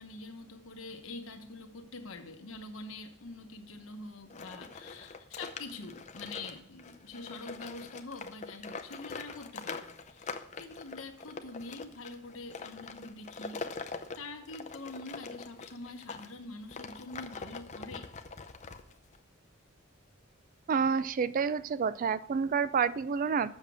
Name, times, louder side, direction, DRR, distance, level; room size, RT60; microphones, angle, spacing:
voice 1, 0.0-18.1, left 3 dB, 85° left, 6 dB, 1.2 m, -45 dB
sound 1, 4.3-16.3 16.7-19.2, left 4 dB, 35° left, 0.6 m, -43 dB
voice 2, 20.7-23.5, right 6 dB, 40° right, 16 dB, 0.3 m, -29 dB
7.6 x 6.6 x 6.2 m, 0.67 s
head